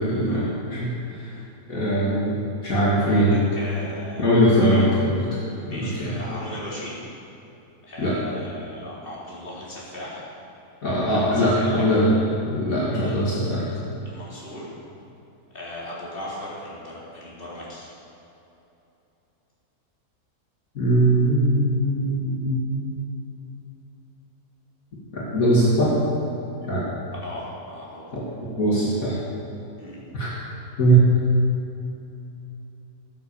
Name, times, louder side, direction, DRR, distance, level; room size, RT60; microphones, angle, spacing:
voice 1, 0.0-1.3 1.7-3.3 4.2-5.2 5.7-6.1 8.0-8.2 10.8-12.1 12.5-13.7 20.7-23.0 25.1-25.9 26.7-26.9 28.1-29.2 30.1-30.3 30.8-31.1, right 1 dB, 60° left, -7 dB, 2.8 m, -21 dB
voice 2, 3.0-4.2 4.6-4.8 5.7-7.0 7.8-10.3 11.1-12.0 13.0-14.7 15.5-18.0 27.2-28.1 29.8-30.0, left 1 dB, 35° left, -6 dB, 3.6 m, -37 dB
16.0 x 8.5 x 7.2 m, 2.9 s
omnidirectional pair, 1.6 m